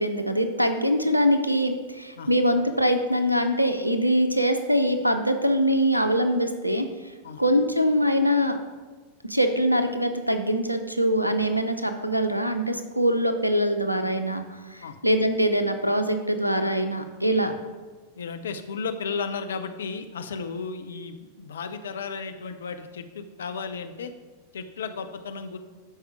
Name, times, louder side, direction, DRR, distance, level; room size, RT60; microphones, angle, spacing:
voice 1, 0.0-6.9 7.4-8.6 9.2-14.4 14.7-17.5, equal, 90° right, 8 dB, 0.7 m, -23 dB
voice 2, 18.2-24.1 24.5-25.6, left 5 dB, 65° left, 8 dB, 0.6 m, -34 dB
12.0 x 5.0 x 4.5 m, 1.3 s
figure-of-eight pair, 90°, 0 cm